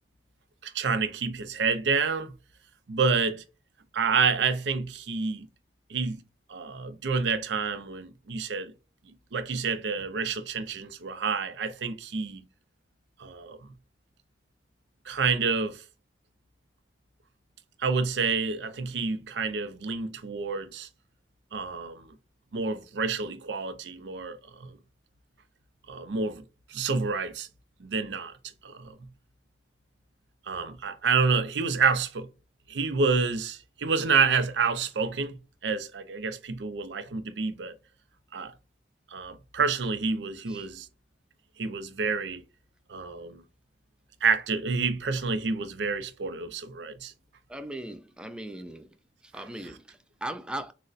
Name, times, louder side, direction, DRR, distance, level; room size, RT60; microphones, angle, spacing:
voice 1, 0.6-2.3 2.9-3.4 3.9-5.5 5.9-6.2 6.5-8.7 9.3-12.4 13.2-13.6 15.1-15.8 17.8-20.9 21.5-22.0 22.5-24.7 25.9-26.4 26.7-27.5 27.8-28.3 28.6-29.0 30.5-32.3 32.7-37.7 38.3-38.5 39.1-40.9 41.6-42.4 42.9-43.4 44.2-47.1, right 5 dB, 85° right, 0.5 m, -28 dB
voice 2, 47.5-49.0 49.2-50.7, right 1 dB, 5° right, 0.3 m, -39 dB
6.3 x 2.1 x 2.5 m
head